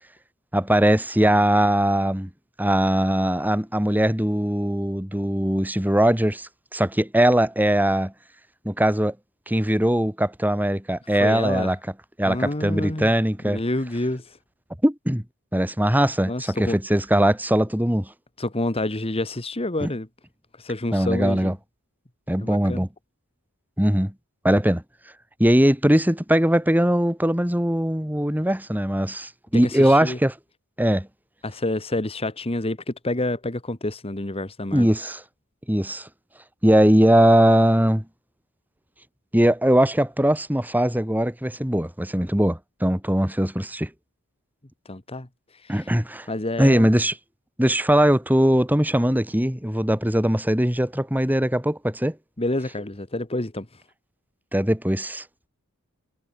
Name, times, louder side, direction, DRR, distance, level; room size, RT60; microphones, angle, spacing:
voice 1, 0.5-2.3 2.6-8.1 8.6-9.1 9.5-11.8 12.2-13.6 14.8-15.2 15.5-18.1 19.8-19.9 20.9-21.6 22.3-22.9 23.8-24.1 24.4-24.8 25.4-30.3 30.8-31.1 34.7-35.2 35.7-36.1 36.6-38.0 39.3-43.9 45.7-46.3 46.6-47.1 47.6-52.1 54.5-55.2, right 1 dB, 10° right, 2.8 m, -20 dB
voice 2, 11.1-11.8 12.2-13.1 13.4-14.4 16.3-16.8 18.4-20.1 20.6-21.5 22.4-22.8 29.5-30.2 31.4-34.9 44.9-45.3 45.5-45.9 46.3-46.9 52.4-53.8, left 1 dB, 25° left, 1.6 m, -28 dB
head